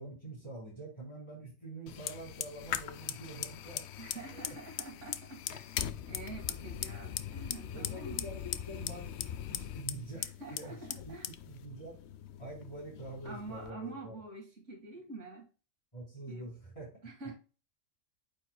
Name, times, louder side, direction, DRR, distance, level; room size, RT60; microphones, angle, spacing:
voice 1, 0.0-4.5 7.7-10.2 10.5-12.0 12.4-14.2 15.9-16.9, right 2 dB, 20° left, -4 dB, 3.4 m, -46 dB
Fire, 1.9-13.7, left 10 dB, 65° left, 0.7 m, -40 dB
voice 2, 4.0-5.8 6.1-8.3 10.1-11.3 13.2-15.5 16.3-16.5 17.0-17.3, right 3 dB, 65° right, 1 dB, 2.1 m, -46 dB
8.7 x 5.2 x 2.2 m, 0.34 s
omnidirectional pair, 1.4 m